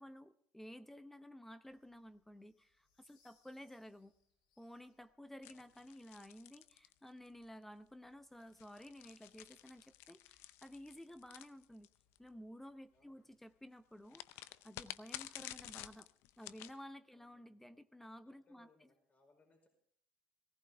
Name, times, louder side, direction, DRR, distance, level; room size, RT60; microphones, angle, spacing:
voice 1, 0.0-4.1 4.6-11.9 12.2-16.1 16.4-18.7, equal, 5° left, 12 dB, 0.8 m, -54 dB
sound 1, 1.6-12.5, left 5 dB, 90° left, 2.9 m, -81 dB
sound 2, 5.4-7.4 8.4-12.2 14.1-16.8, left 15 dB, 75° left, 0.6 m, -51 dB
voice 2, 5.4-5.8 12.9-13.3 17.1-17.6 18.2-19.7, left 2 dB, 35° left, 3 dB, 4.9 m, -71 dB
18.0 x 15.0 x 3.5 m, 0.62 s
hypercardioid pair, 70°, 4 cm